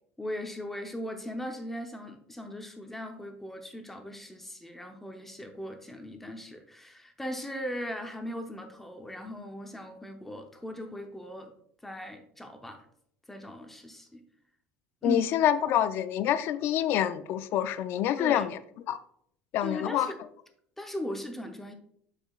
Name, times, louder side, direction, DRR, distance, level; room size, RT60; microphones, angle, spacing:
voice 1, 0.2-11.5 11.8-12.9 13.3-14.2 15.0-15.2 18.2-18.5 19.6-20.2 20.8-21.7, equal, 5° left, 5 dB, 0.7 m, -38 dB
voice 2, 15.0-18.6 18.9-19.0 19.5-20.1, left 11 dB, 50° left, 12 dB, 0.4 m, -26 dB
11.5 x 4.9 x 2.4 m, 0.68 s
cardioid pair, 155°, 5 cm